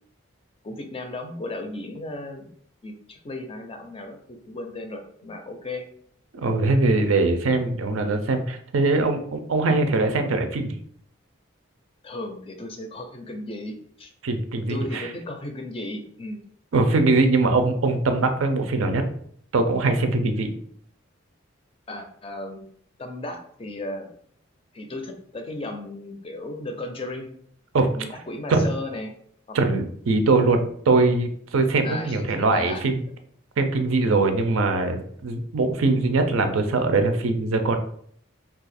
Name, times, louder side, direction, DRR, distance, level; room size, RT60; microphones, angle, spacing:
voice 1, 0.6-2.5 2.8-5.9 9.7-9.9 12.0-14.1 14.7-16.4 21.9-22.7 23.0-24.1 24.7-27.3 27.9-29.1 29.5-29.6 31.8-32.8, left 2 dB, 25° left, 5 dB, 0.4 m, -35 dB
voice 2, 6.3-10.8 14.2-15.1 16.7-19.0 19.5-20.5 27.7-27.9 28.5-28.7 29.5-33.0 33.6-37.8, right 3 dB, 80° right, 6 dB, 0.5 m, -22 dB
2.7 x 2.3 x 4.1 m, 0.63 s
head